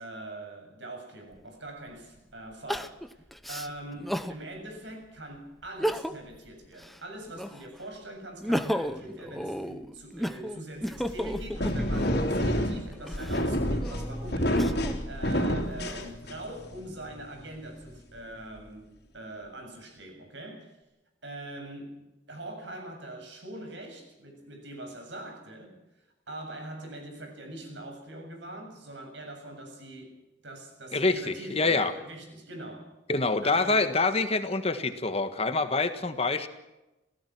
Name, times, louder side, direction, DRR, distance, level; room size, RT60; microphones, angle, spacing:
voice 1, 0.0-20.7 21.2-22.0 22.3-25.8 26.3-30.2 30.4-32.9 33.4-33.8, right 1 dB, 70° right, 7.2 m, -43 dB
Crying sobbing, 1.3-1.4 2.7-4.4 4.9-5.0 5.7-6.4 6.7-7.8 8.2-12.2 12.9-15.0 15.6-16.4, equal, ahead, 0.9 m, -34 dB
sound 1, 11.0-16.6, equal, 55° left, 3.2 m, -28 dB
voice 2, 30.9-31.9 33.1-36.5, left 3 dB, 30° left, 1.5 m, -26 dB
27.5 x 17.5 x 6.1 m
head